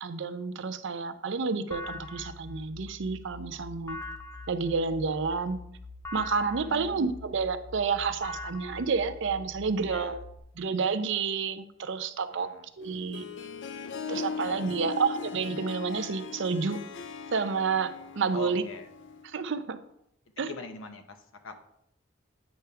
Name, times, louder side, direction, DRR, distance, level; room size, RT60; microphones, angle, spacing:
voice 1, 0.0-4.0 4.5-5.6 6.1-10.2 10.6-13.2 14.1-16.8 17.3-18.6 19.2-19.8 20.4-20.5, right 5 dB, 65° right, 11 dB, 0.5 m, -30 dB
sound 1, 1.7-10.4, left 2 dB, 15° left, 0.7 m, -43 dB
voice 2, 6.6-7.0 9.8-10.2 12.3-12.7 14.3-14.9 18.3-18.9 20.4-21.2 21.4-21.6, left 4 dB, 85° left, 7 dB, 0.9 m, -43 dB
Harp, 12.8-19.3, left 5 dB, 65° left, 0.5 m, -39 dB
8.9 x 3.4 x 5.7 m, 0.77 s
head